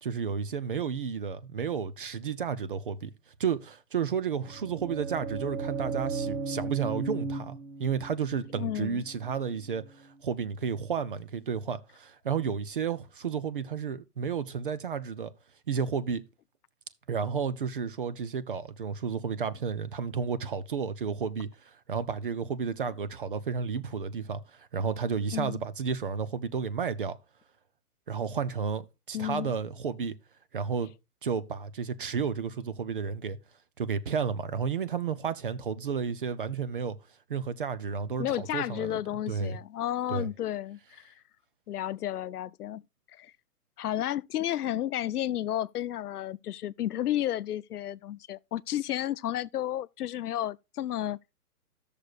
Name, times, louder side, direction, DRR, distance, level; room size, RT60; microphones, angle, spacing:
voice 1, 0.0-3.1 3.4-15.3 15.7-16.2 17.1-27.2 28.1-30.2 30.5-30.9 31.2-33.4 33.8-37.0 37.3-39.0 39.3-39.6 40.1-40.3, right 6 dB, 35° right, 0.6 m, -32 dB
sound 1, 4.3-10.1, right 4 dB, 65° right, 1.9 m, -36 dB
voice 2, 8.6-9.0 25.3-25.6 29.1-29.6 38.2-41.1 41.7-42.8 43.2-43.3 43.8-51.2, left 12 dB, 75° left, 0.6 m, -32 dB
13.5 x 6.6 x 2.4 m
hypercardioid pair, 165°, 46 cm